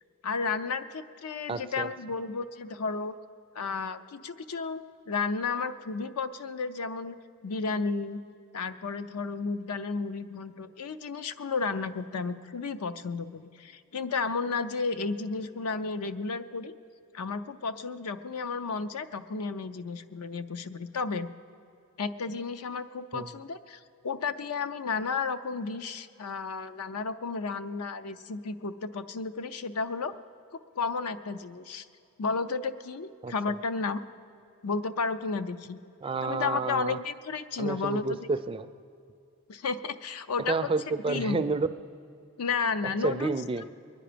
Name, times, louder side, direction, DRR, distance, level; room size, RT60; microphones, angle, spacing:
voice 1, 0.2-3.1 3.5-7.2 7.4-8.2 8.5-16.8 17.1-21.3 22.0-30.1 30.5-31.9 32.2-34.0 34.6-35.8 36.2-38.3 39.5-40.7 41.1-41.4 42.4-43.3, left 4 dB, 80° left, 11 dB, 0.6 m, -32 dB
voice 2, 1.5-1.9 23.1-23.3 33.2-33.3 36.0-37.0 37.6-38.7 40.5-41.7 43.0-43.7, right 4 dB, 25° right, 11 dB, 0.3 m, -30 dB
22.5 x 10.0 x 5.1 m, 2.5 s
head